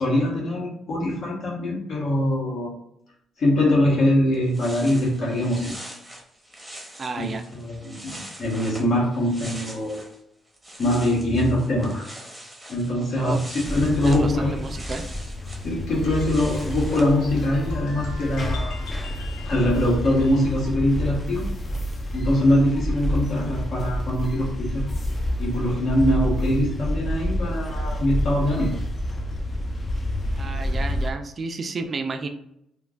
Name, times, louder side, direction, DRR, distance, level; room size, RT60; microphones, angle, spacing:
voice 1, 0.0-2.7 3.4-5.7 7.2-8.1 8.4-10.0 10.8-12.1 12.7-14.5 15.6-18.7 19.4-21.5 22.1-24.9 25.4-28.7, left 1 dB, 65° left, -3 dB, 1.2 m, -23 dB
sound 1, 4.0-4.1 4.3-10.2 10.5-17.1, right 1 dB, ahead, 0.8 m, -42 dB
voice 2, 7.0-7.4 13.2-13.4 14.1-15.0 30.4-32.3, right 3 dB, 40° right, 6 dB, 0.3 m, -31 dB
sound 2, 13.6-31.1, equal, 35° left, 0.4 m, -28 dB
sound 3, 15.7-20.5, left 3 dB, 85° left, 0.7 m, -43 dB
3.2 x 2.2 x 2.4 m, 0.76 s
cardioid pair, 90°, 0 cm